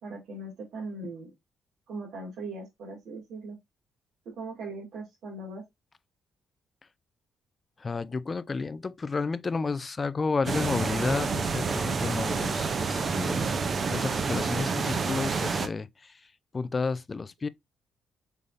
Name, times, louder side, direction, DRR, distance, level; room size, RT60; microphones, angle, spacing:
voice 1, 0.0-1.3 1.9-3.6 4.3-5.6, right 2 dB, 70° right, 2.3 m, -39 dB
voice 2, 7.8-13.5 13.9-16.2 16.5-17.5, left 4 dB, 30° left, 0.3 m, -31 dB
sound 1, 10.4-15.7, right 4 dB, 45° right, 0.6 m, -28 dB
5.4 x 3.5 x 2.5 m
cardioid pair, 90°, 0 cm